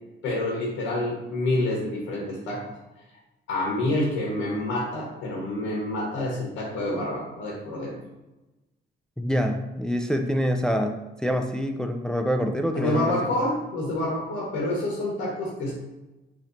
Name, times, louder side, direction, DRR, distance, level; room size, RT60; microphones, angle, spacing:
voice 1, 0.2-2.6 3.5-8.0 12.7-15.7, left 1 dB, 85° left, -3 dB, 1.1 m, -27 dB
voice 2, 9.2-13.5, equal, 5° left, 5 dB, 0.4 m, -26 dB
3.1 x 2.9 x 3.9 m, 1.0 s
cardioid pair, 90°, 20 cm